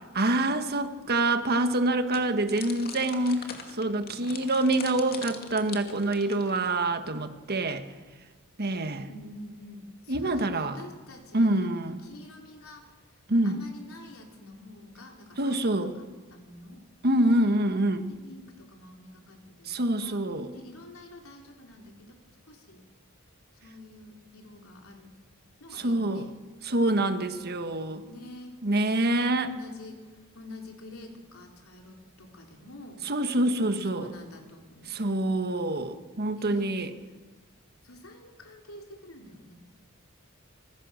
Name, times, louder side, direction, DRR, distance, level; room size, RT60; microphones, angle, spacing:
voice 1, 0.1-3.5 3.7-7.9 8.6-9.1 10.1-10.8 11.3-12.0 13.3-13.6 15.4-16.0 17.0-18.1 19.7-20.5 25.7-26.3 26.6-28.0 28.6-29.5 33.0-34.1 34.9-36.9, right 1 dB, 50° right, 8 dB, 1.6 m, -26 dB
sound 1, 2.1-6.8, left 6 dB, 45° left, 2.5 m, -43 dB
voice 2, 9.0-12.9 13.4-16.8 18.1-22.1 22.5-22.8 23.6-25.1 25.6-26.3 28.1-28.6 29.3-33.0 33.6-35.0 36.3-36.7 37.8-39.5, left 1 dB, 70° left, 2 dB, 4.1 m, -47 dB
25.5 x 21.0 x 6.6 m, 1.3 s
head